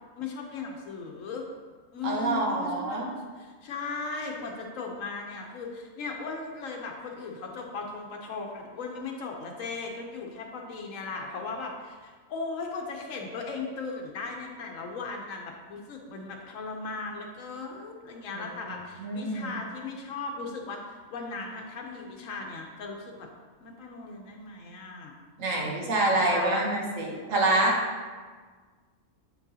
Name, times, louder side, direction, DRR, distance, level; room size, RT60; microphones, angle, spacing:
voice 1, 0.2-1.4 1.9-23.3 23.6-25.2 25.6-26.6, left 4 dB, 90° left, 1 dB, 1.1 m, -37 dB
voice 2, 2.0-3.1 18.3-18.7 19.0-19.5 25.4-27.8, right 2 dB, 90° right, -2 dB, 1.6 m, -27 dB
7.5 x 6.0 x 2.8 m, 1.5 s
omnidirectional pair, 1.3 m